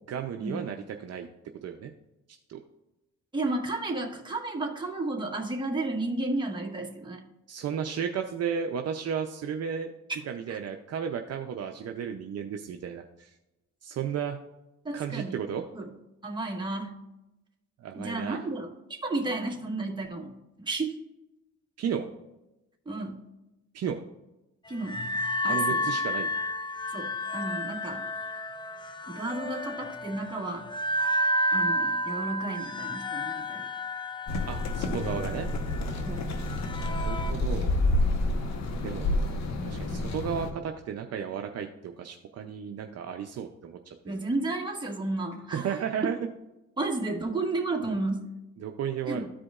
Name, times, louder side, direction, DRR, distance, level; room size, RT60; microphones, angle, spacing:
voice 1, 0.1-1.3 1.6-1.9 2.5-2.6 7.5-9.9 10.2-13.3 13.8-14.4 14.9-15.7 17.8-18.5 21.8-22.1 23.7-24.0 25.5-26.3 34.5-35.5 36.8-37.7 38.8-39.2 39.7-44.2 45.5-46.2 48.6-49.3, right 7 dB, 55° right, 5 dB, 0.6 m, -34 dB
voice 2, 3.3-7.2 10.5-10.6 14.8-15.4 15.7-15.9 16.2-17.0 17.9-20.9 22.8-23.2 24.7-25.0 25.4-25.8 26.9-28.0 29.1-30.7 31.5-33.6 36.0-36.3 44.0-45.8 46.8-48.3 49.1-49.3, right 2 dB, 15° right, 0 dB, 1.5 m, -32 dB
sound 1, 24.7-37.3, equal, 15° left, 0.4 m, -31 dB
Sound Walk - Skateboard, 34.3-40.5, left 2 dB, 65° left, 1.1 m, -29 dB
13.5 x 5.0 x 2.4 m, 0.97 s
cardioid pair, 90°, 30 cm